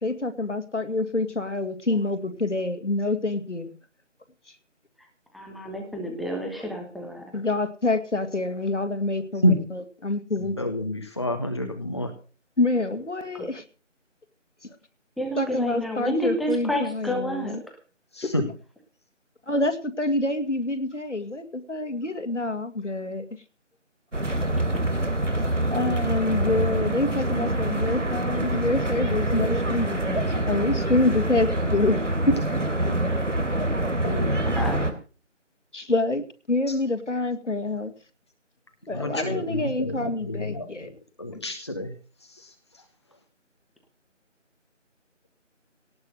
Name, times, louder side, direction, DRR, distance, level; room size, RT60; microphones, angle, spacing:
voice 1, 0.0-3.8 7.3-10.5 12.6-13.6 15.4-17.6 19.5-23.3 25.7-32.4 35.7-37.9 38.9-40.9, left 2 dB, 70° left, 7 dB, 2.3 m, -27 dB
voice 2, 5.3-7.2 13.3-13.5 15.2-17.6 34.4-34.8, equal, ahead, 2 dB, 0.8 m, -30 dB
voice 3, 10.4-12.1 18.1-18.4 34.0-34.4 34.8-34.9 38.9-40.9 41.2-41.9 42.4-42.5, left 1 dB, 20° left, 5 dB, 1.2 m, -28 dB
sound 1, 24.1-34.9, right 1 dB, 75° right, 3.1 m, -25 dB
18.0 x 6.2 x 7.9 m, 0.38 s
figure-of-eight pair, 165°, 38 cm